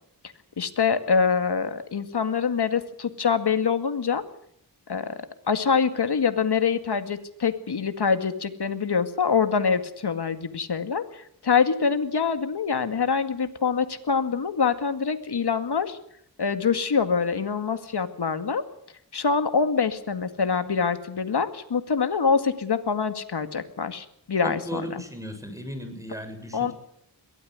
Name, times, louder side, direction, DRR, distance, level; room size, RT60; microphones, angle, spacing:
voice 1, 0.6-4.2 4.9-16.0 16.4-18.6 19.1-25.0 26.5-26.7, left 5 dB, 80° left, 9 dB, 2.1 m, -25 dB
voice 2, 24.4-26.7, equal, 10° right, 8 dB, 7.0 m, -36 dB
22.5 x 17.0 x 9.5 m, 0.70 s
wide cardioid pair, 60°, 39 cm